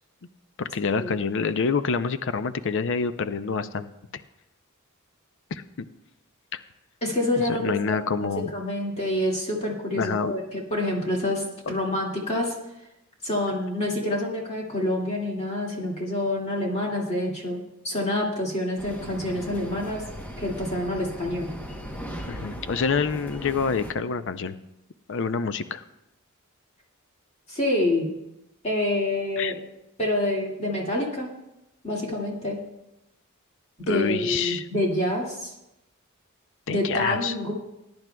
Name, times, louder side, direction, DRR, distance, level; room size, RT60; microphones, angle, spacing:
voice 1, 0.6-4.2 5.5-5.9 6.5-6.6 7.4-8.5 10.0-10.4 11.7-11.8 22.3-24.6 25.1-25.8 29.4-29.5 33.9-34.7 36.7-37.4, left 5 dB, 60° left, 12 dB, 0.5 m, -27 dB
voice 2, 7.0-12.6 13.2-20.0 20.4-21.5 27.5-28.1 28.6-29.6 30.0-31.3 31.8-32.6 33.8-35.5 36.7-37.5, left 1 dB, 30° left, -3 dB, 2.1 m, -27 dB
sound 1, 18.8-23.9, equal, 5° left, 0.9 m, -38 dB
20.5 x 10.5 x 2.2 m, 0.89 s
head